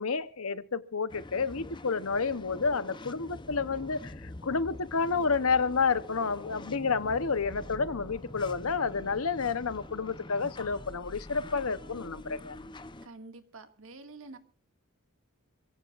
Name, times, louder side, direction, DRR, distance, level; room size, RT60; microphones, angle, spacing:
voice 1, 0.0-12.6, left 5 dB, 75° left, 0.9 m, -30 dB
sound 1, 1.1-13.1, left 2 dB, 20° left, 0.7 m, -45 dB
voice 2, 13.0-14.4, right 3 dB, 65° right, 2.0 m, -47 dB
26.5 x 16.5 x 2.5 m
head